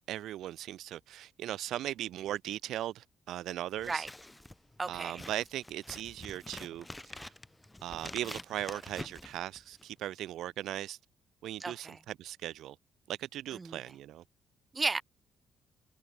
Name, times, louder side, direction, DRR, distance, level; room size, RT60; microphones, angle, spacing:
voice 1, 0.0-4.1 4.9-7.3 7.8-11.0 11.4-12.8 13.1-14.2, right 13 dB, 80° right, 1.2 m, -38 dB
Scissors, 3.8-10.0, left 1 dB, 10° left, 5.8 m, -47 dB
voice 2, 4.8-5.2 11.6-12.0 13.5-13.8 14.7-15.0, right 3 dB, 25° right, 5.7 m, -34 dB
cardioid pair, 90°, 0 cm